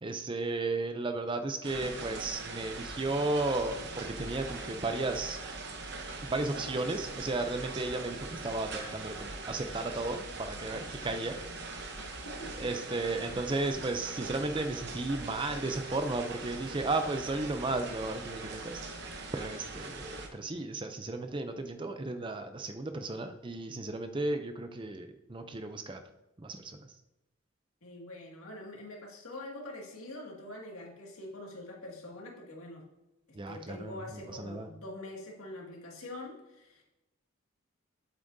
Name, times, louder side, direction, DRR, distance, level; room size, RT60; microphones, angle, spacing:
voice 1, 0.0-5.4 6.2-11.4 12.6-18.8 19.3-26.0 26.4-26.9 33.3-34.0 34.3-34.7, right 2 dB, 25° right, 8 dB, 0.5 m, -34 dB
sound 1, 1.6-20.3, right 3 dB, 50° right, 0.9 m, -41 dB
voice 2, 11.9-12.7 27.8-32.8 33.5-36.8, left 1 dB, 85° left, -1 dB, 2.1 m, -45 dB
8.2 x 7.3 x 2.7 m, 0.97 s
head